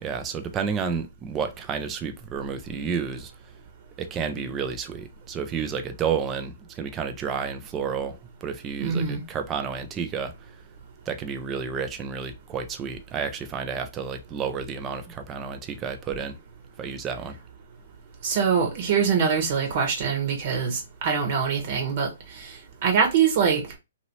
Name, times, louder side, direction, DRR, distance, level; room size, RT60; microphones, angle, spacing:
voice 1, 0.0-3.3 4.0-10.5 11.1-16.4 16.8-17.4, right 6 dB, 20° right, 0.5 m, -31 dB
voice 2, 8.8-9.2 18.2-23.6, right 6 dB, 50° right, 1.2 m, -24 dB
2.9 x 2.8 x 3.0 m
hypercardioid pair, 135°, 0 cm